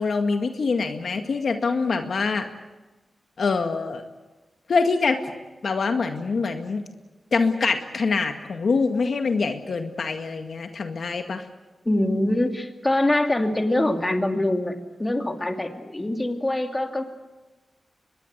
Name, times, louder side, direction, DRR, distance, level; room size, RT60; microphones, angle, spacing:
voice 1, 0.0-2.5 3.4-4.0 4.7-5.3 5.6-6.8 7.3-11.4, left 4 dB, 70° left, 6 dB, 2.0 m, -24 dB
voice 2, 11.8-17.1, left 1 dB, 20° left, 5 dB, 2.5 m, -24 dB
24.5 x 21.0 x 8.2 m, 1.1 s
wide cardioid pair, 85°, 0 cm